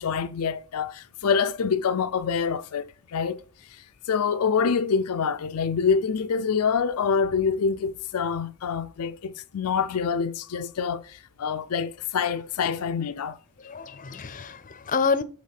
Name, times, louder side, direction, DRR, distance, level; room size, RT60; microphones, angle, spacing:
voice 1, 0.0-3.4 4.1-13.3, left 6 dB, 90° left, 0.5 m, -26 dB
voice 2, 13.3-15.2, left 5 dB, 35° left, 0.6 m, -28 dB
6.5 x 3.6 x 5.6 m
head